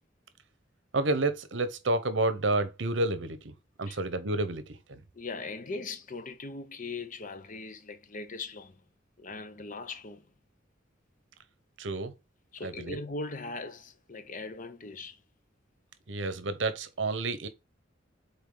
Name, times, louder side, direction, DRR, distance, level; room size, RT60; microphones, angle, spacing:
voice 1, 0.9-3.5 3.8-4.6 4.9-5.0 11.8-12.1 12.6-13.0 16.1-17.5, right 2 dB, 70° right, 1.0 m, -29 dB
voice 2, 5.1-8.8 9.2-10.2 12.5-15.2, left 3 dB, 45° left, 0.8 m, -40 dB
6.8 x 4.1 x 3.9 m
head